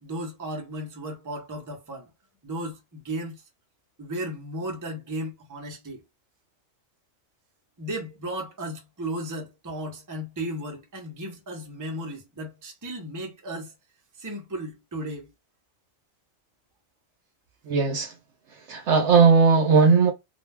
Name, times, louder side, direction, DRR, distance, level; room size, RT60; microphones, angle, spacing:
voice 1, 0.0-2.1 2.4-3.4 4.0-6.0 7.8-13.7 14.2-15.3, right 1 dB, 20° right, 0.6 m, -35 dB
voice 2, 17.7-18.1 18.7-20.1, right 5 dB, 65° right, 0.9 m, -18 dB
2.4 x 2.3 x 3.2 m
omnidirectional pair, 1.4 m